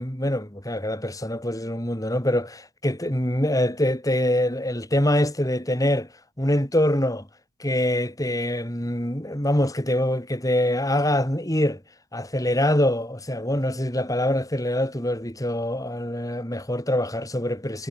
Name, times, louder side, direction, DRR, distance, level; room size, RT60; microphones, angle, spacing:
voice 1, 0.0-6.1 6.4-7.3 7.6-11.8 12.1-17.9, left 1 dB, 15° left, 5.0 m, -24 dB
head